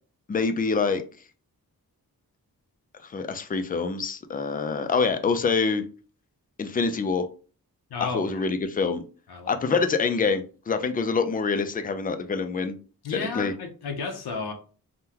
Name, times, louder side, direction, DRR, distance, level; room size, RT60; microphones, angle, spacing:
voice 1, 0.3-1.0 3.0-5.8 6.6-7.3 8.0-9.0 9.5-12.8 13.1-13.5, left 4 dB, 25° left, 0.3 m, -26 dB
voice 2, 7.9-8.5 9.3-9.5 13.0-14.5, left 4 dB, 85° left, 0.7 m, -33 dB
3.6 x 2.2 x 2.8 m
wide cardioid pair, 120°, 38 cm